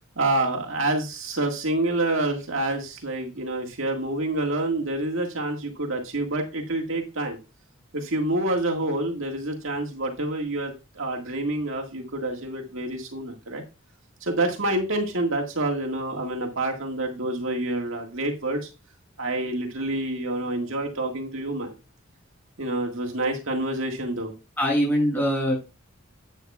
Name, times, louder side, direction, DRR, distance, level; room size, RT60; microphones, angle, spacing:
voice 1, 0.2-7.4 7.9-13.6 14.2-18.7 19.2-21.7 22.6-24.3, right 2 dB, 65° right, 1 dB, 1.8 m, -27 dB
voice 2, 24.6-25.6, equal, 10° left, -2 dB, 6.7 m, -22 dB
11.5 x 9.1 x 2.4 m, 0.28 s
head